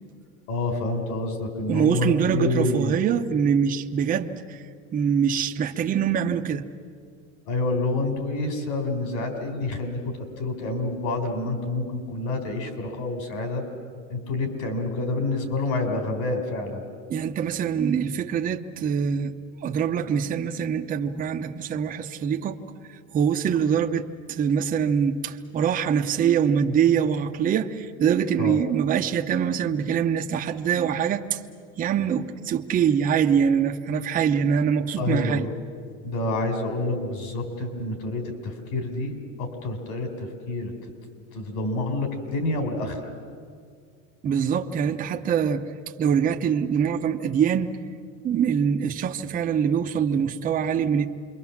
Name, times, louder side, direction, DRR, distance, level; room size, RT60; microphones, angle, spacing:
voice 1, 0.5-3.0 7.5-13.6 14.1-16.8 28.4-28.6 35.0-35.5 36.0-40.7 41.3-43.1, left 2 dB, 60° left, 6 dB, 4.4 m, -28 dB
voice 2, 1.7-4.6 4.9-6.6 17.1-19.3 19.6-22.6 23.1-31.4 31.8-35.5 44.2-45.7 46.0-47.7 48.2-51.1, right 7 dB, 20° right, 4 dB, 0.8 m, -24 dB
27.5 x 23.0 x 7.3 m, 2.1 s
supercardioid pair, 155°, 38 cm